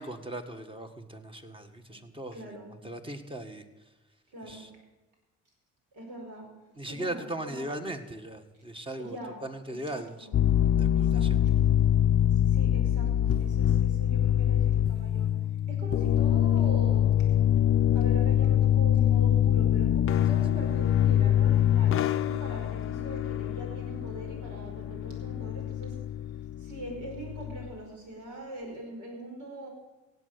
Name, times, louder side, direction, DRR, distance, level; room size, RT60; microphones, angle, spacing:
voice 1, 0.0-3.6 4.4-4.7 6.7-10.3 10.8-11.4, right 1 dB, 15° right, 7 dB, 1.6 m, -39 dB
voice 2, 2.3-2.7 4.3-4.7 5.9-6.5 6.8-7.7 9.0-9.4 9.7-10.4 11.1-11.5 12.5-15.3 15.7-17.1 17.9-25.9 26.6-29.7, right 1 dB, 75° right, 1 dB, 5.3 m, -42 dB
sound 1, 10.3-27.7, left 10 dB, 45° left, 0.5 m, -25 dB
16.5 x 8.1 x 6.8 m, 1.1 s
cardioid pair, 90°, 30 cm